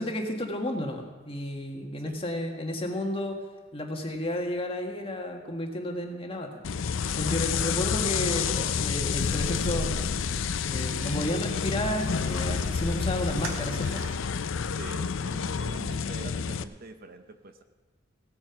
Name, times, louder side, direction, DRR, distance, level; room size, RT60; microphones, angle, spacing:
voice 1, 0.0-3.4 3.7-6.6 7.1-10.0 10.7-14.0, left 1 dB, 30° left, 2 dB, 1.7 m, -32 dB
sound 1, 6.6-16.6, left 6 dB, 85° left, 0.5 m, -29 dB
sound 2, 9.2-14.2, right 3 dB, 90° right, 1.9 m, -45 dB
voice 2, 14.7-17.6, right 2 dB, 50° right, 8 dB, 0.8 m, -44 dB
17.0 x 9.0 x 5.8 m, 1.2 s
head